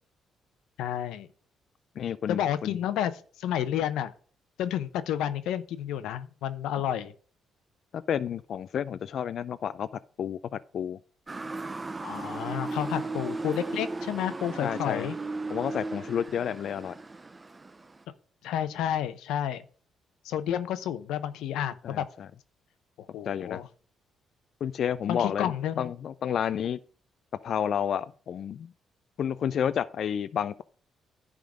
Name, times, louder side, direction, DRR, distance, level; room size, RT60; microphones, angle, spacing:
voice 1, 0.8-1.3 2.3-4.1 4.6-7.1 12.0-15.1 18.4-19.6 20.2-22.1 23.1-23.7 25.1-25.9, left 10 dB, 90° left, 0.7 m, -30 dB
voice 2, 2.0-2.8 7.9-9.9 10.2-11.0 14.6-15.1 15.5-16.9 21.8-22.3 23.3-23.6 24.6-26.8 27.4-28.7 29.2-30.6, left 8 dB, 60° left, 0.3 m, -30 dB
Motor vehicle (road) / Siren, 11.3-18.0, right 3 dB, 25° right, 0.5 m, -36 dB
10.5 x 3.7 x 6.3 m
cardioid pair, 90°, 0 cm